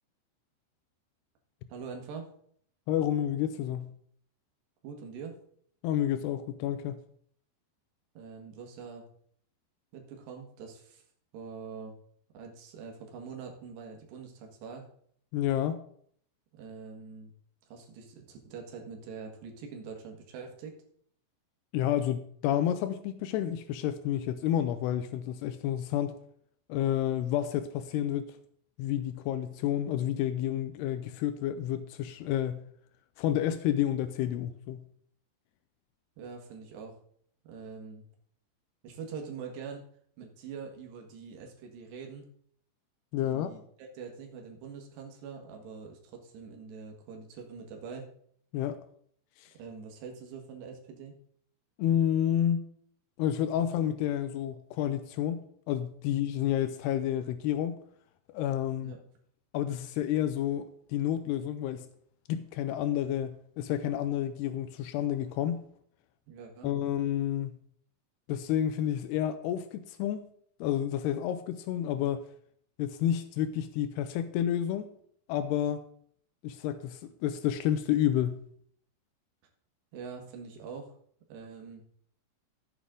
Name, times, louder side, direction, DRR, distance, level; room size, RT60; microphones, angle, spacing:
voice 1, 1.7-2.3 4.8-5.4 8.2-9.1 9.9-11.0 11.3-12.0 12.3-14.9 16.5-17.3 17.7-20.8 36.2-37.0 37.4-38.1 38.8-39.9 40.2-42.3 43.2-48.1 49.5-51.2 58.8-59.0 66.3-66.7 79.9-80.9 81.3-81.8, right 5 dB, 70° right, 2 dB, 3.6 m, -44 dB
voice 2, 2.9-3.9 5.8-7.0 15.3-15.8 21.7-26.2 26.7-28.4 28.8-32.6 33.2-34.8 43.1-43.5 48.5-48.8 49.4-49.5 51.8-52.6 53.2-55.4 55.7-57.8 58.3-58.9 59.5-61.9 62.3-65.6 66.6-67.5 68.3-70.3 70.6-72.3 72.8-74.9 75.3-75.8 76.4-78.4, left 11 dB, 90° left, 11 dB, 2.3 m, -30 dB
14.5 x 8.3 x 3.8 m, 0.64 s
omnidirectional pair, 5.3 m